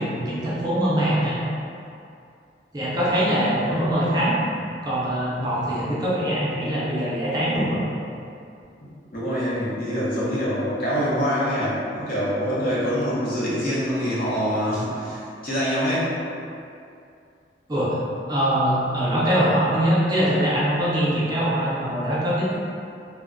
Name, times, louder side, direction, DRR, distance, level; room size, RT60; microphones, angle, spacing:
voice 1, 0.0-1.4 2.7-4.3 4.8-7.9 17.7-18.0 18.3-22.5, equal, 25° right, -8 dB, 0.5 m, -23 dB
voice 2, 8.8-16.2, equal, 50° left, -9 dB, 0.8 m, -25 dB
2.1 x 2.1 x 3.6 m, 2.5 s
head